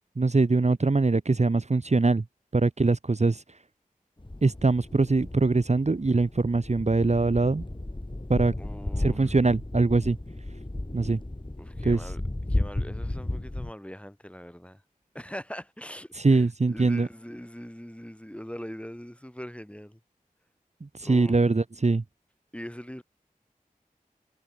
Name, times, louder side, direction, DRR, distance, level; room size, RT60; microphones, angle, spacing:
voice 1, 0.2-2.2 2.5-3.4 4.4-7.6 8.3-8.5 9.0-10.2 10.9-11.2 11.8-12.0 16.2-17.1 20.8-22.0, right 3 dB, 50° right, 1.0 m, -23 dB
sound 1, 4.2-13.7, left 1 dB, 35° left, 7.0 m, -34 dB
voice 2, 8.6-9.3 11.6-12.2 12.5-14.8 15.1-20.0 21.0-21.4 22.5-23.0, equal, 10° left, 7.9 m, -41 dB
wide cardioid pair, 50°, 15 cm